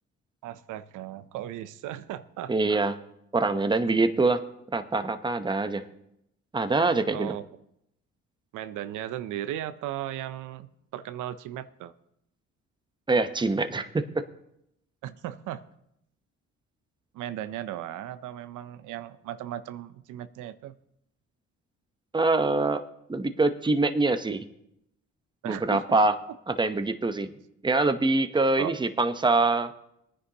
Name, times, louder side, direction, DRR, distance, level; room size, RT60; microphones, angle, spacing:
voice 1, 0.4-2.8 7.1-7.4 8.5-11.9 15.0-15.6 17.1-20.8 25.4-25.8 28.6-28.7, right 12 dB, 90° right, 12 dB, 0.6 m, -36 dB
voice 2, 2.5-2.9 3.3-4.4 4.7-5.8 6.5-7.3 13.1-14.0 22.1-22.8 23.1-24.4 25.4-26.1 26.5-27.3 27.6-29.7, right 3 dB, 15° right, 9 dB, 0.8 m, -24 dB
21.5 x 9.8 x 2.9 m, 0.78 s
cardioid pair, 90°, 30 cm